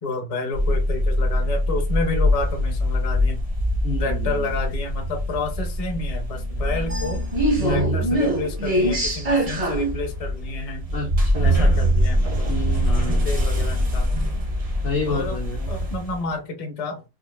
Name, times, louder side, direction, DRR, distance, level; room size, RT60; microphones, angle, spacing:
voice 1, 0.0-3.4 4.0-7.2 7.7-10.8 11.4-12.5 12.8-14.2 15.1-15.4 15.7-17.0, left 3 dB, 35° left, 3 dB, 0.5 m, -30 dB
sound 1, 0.5-16.2, equal, 40° right, 0.5 m, -23 dB
voice 2, 3.8-4.4 7.6-8.1 10.9-11.9 12.5-13.3 14.8-15.7, left 3 dB, 60° left, 1 dB, 0.9 m, -29 dB
4.3 x 2.4 x 2.4 m, 0.25 s
omnidirectional pair, 2.0 m